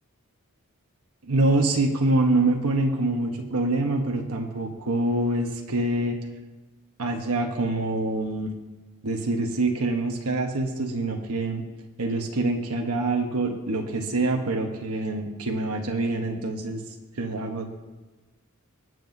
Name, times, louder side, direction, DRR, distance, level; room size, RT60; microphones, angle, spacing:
voice 1, 1.2-6.2 7.0-8.5 9.0-11.6 12.0-16.8 17.2-17.8, right 2 dB, 80° right, 2 dB, 1.1 m, -25 dB
23.0 x 7.6 x 2.7 m, 1.2 s
head